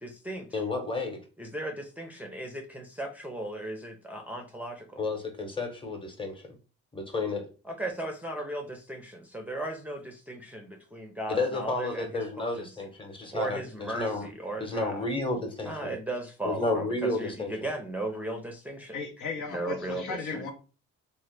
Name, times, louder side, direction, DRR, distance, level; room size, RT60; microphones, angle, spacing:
voice 1, 0.0-0.5 1.4-5.0 7.6-12.7 13.3-15.0 15.6-19.0 19.5-20.4, right 1 dB, 5° right, 0.5 m, -36 dB
voice 2, 0.5-1.2 5.0-6.4 6.9-7.4 11.3-14.3 14.6-15.9 16.4-17.7, left 2 dB, 15° left, 0.9 m, -31 dB
voice 3, 18.9-20.5, left 4 dB, 75° left, 0.8 m, -36 dB
3.2 x 2.2 x 3.1 m
cardioid pair, 90°, 30 cm